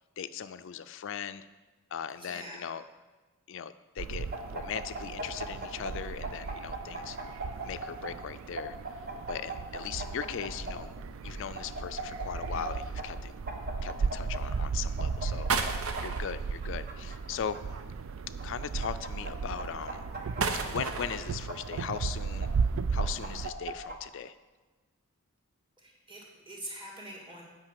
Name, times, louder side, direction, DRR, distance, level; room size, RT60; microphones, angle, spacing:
voice 1, 0.2-1.4 1.9-2.8 3.5-4.3 4.5-7.2 7.6-8.8 9.3-10.9 11.2-13.3 13.8-15.5 16.0-17.6 18.4-20.0 20.7-22.5 22.9-24.3, left 8 dB, 60° left, 12 dB, 0.4 m, -38 dB
voice 2, 2.2-2.7 25.8-27.4, right 1 dB, 25° right, -2 dB, 2.3 m, -44 dB
sound 1, 4.0-23.5, right 5 dB, 65° right, 0.4 m, -36 dB
sound 2, 4.3-5.9 6.2-8.1 8.6-10.7 11.5-12.7 13.0-13.1 13.5-14.4 15.0-16.0 16.6-17.6 18.4-19.3 19.6-20.9 21.5-22.5 23.0-24.0, right 2 dB, 40° right, 1.1 m, -38 dB
sound 3, 9.9-18.4 18.7-24.0, right 4 dB, 80° right, 0.8 m, -39 dB
8.9 x 5.4 x 7.5 m, 1.3 s
head